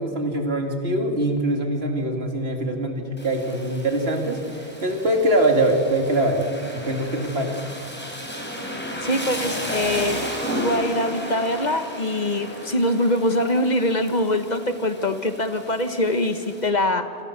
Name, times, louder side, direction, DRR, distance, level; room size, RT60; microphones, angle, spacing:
voice 1, 0.0-7.6, right 1 dB, 75° right, 3 dB, 3.0 m, -23 dB
Rain, 3.2-16.7, equal, 10° left, 4.5 m, -34 dB
voice 2, 9.0-10.2 10.5-17.0, left 1 dB, 45° left, 9 dB, 1.5 m, -23 dB
27.0 x 26.5 x 6.8 m, 2.6 s
omnidirectional pair, 1.1 m